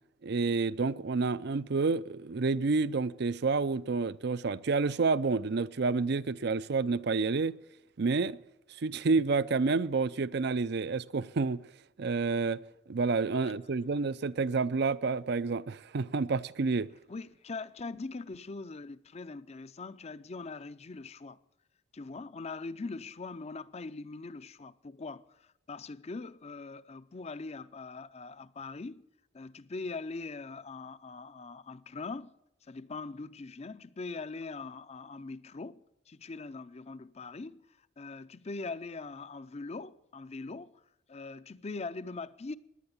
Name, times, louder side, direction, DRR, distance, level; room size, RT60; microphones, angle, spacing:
voice 1, 0.2-7.6 8.0-8.4 8.8-11.6 12.0-12.6 12.9-16.9, right 4 dB, 60° right, 0.5 m, -29 dB
voice 2, 17.1-21.4 21.9-29.0 29.3-32.3 32.7-37.7 38.0-40.8 41.1-42.6, left 3 dB, 35° left, 0.5 m, -42 dB
16.5 x 11.0 x 7.2 m
head